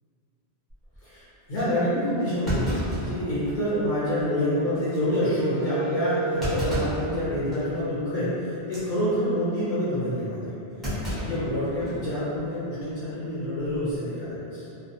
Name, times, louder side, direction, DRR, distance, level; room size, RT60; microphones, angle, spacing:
Thump thud, 0.7-1.0 1.6-1.7 2.4-3.8 4.2-4.3 4.7-5.0 6.4-7.1 7.5-7.8 8.6-8.9 10.8-12.0 12.3-12.4 13.6-13.9, equal, ahead, 0.7 m, -31 dB
voice 1, 1.0-10.5 10.9-14.7, left 1 dB, 55° left, -11 dB, 0.8 m, -27 dB
Wind instrument woodwind instrument, 4.5-8.7, right 3 dB, 85° left, 0.9 m, -33 dB
2.2 x 2.2 x 2.7 m, 2.8 s
omnidirectional pair, 1.1 m